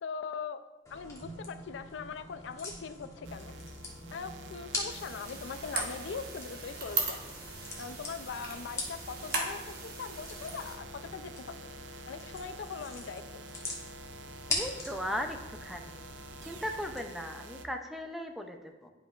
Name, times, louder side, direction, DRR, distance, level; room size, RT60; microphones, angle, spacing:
voice 1, 0.0-0.6 0.9-3.5 4.1-7.3 7.8-11.6 12.1-13.2 13.5-13.6, left 6 dB, 75° left, 10 dB, 0.4 m, -41 dB
sound 1, 0.9-17.0, left 2 dB, 15° left, 1.2 m, -43 dB
sound 2, 3.2-17.7, right 1 dB, 80° right, 0.5 m, -48 dB
sound 3, 4.9-10.8, right 4 dB, 55° right, 1.3 m, -38 dB
voice 2, 14.5-16.0 16.4-18.9, equal, ahead, 4 dB, 0.4 m, -37 dB
11.0 x 5.4 x 2.4 m, 1.2 s
head